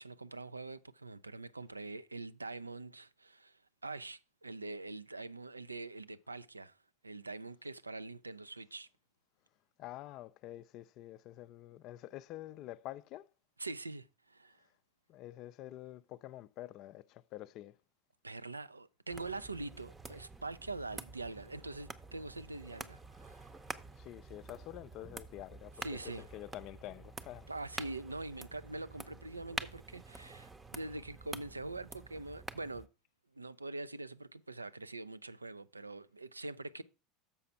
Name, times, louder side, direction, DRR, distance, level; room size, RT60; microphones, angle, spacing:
voice 1, 0.0-6.7 7.0-8.9 13.6-14.6 18.2-23.5 25.8-26.3 27.5-32.9 33.3-36.8, right 2 dB, 80° right, 0.4 m, -44 dB
voice 2, 9.8-13.3 15.1-17.8 24.0-27.5, left 14 dB, 45° left, 0.4 m, -47 dB
sound 1, 19.1-32.9, right 3 dB, 15° right, 0.7 m, -48 dB
6.9 x 5.7 x 5.6 m
figure-of-eight pair, 75°, 0 cm